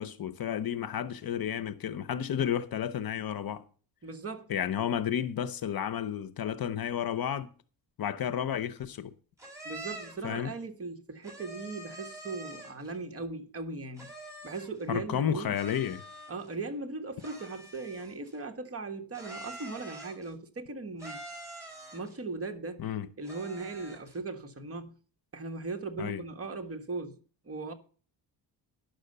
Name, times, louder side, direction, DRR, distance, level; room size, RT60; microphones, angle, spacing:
voice 1, 0.0-3.6 4.5-7.5 8.0-9.1 10.2-10.5 14.9-16.0 22.8-23.1 26.0-26.2, left 9 dB, 60° left, 0.8 m, -32 dB
voice 2, 4.0-4.5 9.6-14.1 14.4-15.6 16.3-21.2 21.9-22.8 23.2-24.9 25.3-27.2 27.4-27.7, right 3 dB, 35° right, 1.5 m, -38 dB
sound 1, 9.4-10.3 11.2-12.9 14.0-14.8 15.5-16.5 17.2-18.3 19.1-20.3 21.0-22.2 23.2-24.2, right 1 dB, 10° right, 4.8 m, -45 dB
10.5 x 6.4 x 6.6 m
cardioid pair, 115°, 41 cm